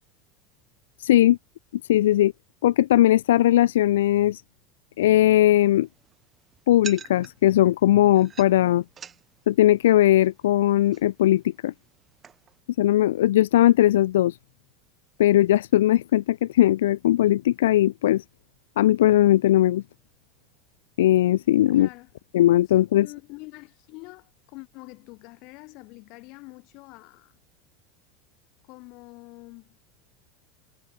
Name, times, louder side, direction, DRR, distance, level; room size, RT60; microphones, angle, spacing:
voice 1, 1.0-1.4 1.9-2.3 2.6-4.4 5.0-5.9 6.7-8.8 9.5-11.7 12.8-14.4 15.2-18.2 18.8-19.8 21.0-21.9 22.3-23.1, left 13 dB, 70° left, 0.9 m, -19 dB
sound 1, 5.3-12.6, right 7 dB, 30° right, 6.9 m, -47 dB
voice 2, 21.7-22.1 23.0-27.4 28.6-29.8, left 26 dB, 55° left, 4.6 m, -45 dB
figure-of-eight pair, 80°, 0 cm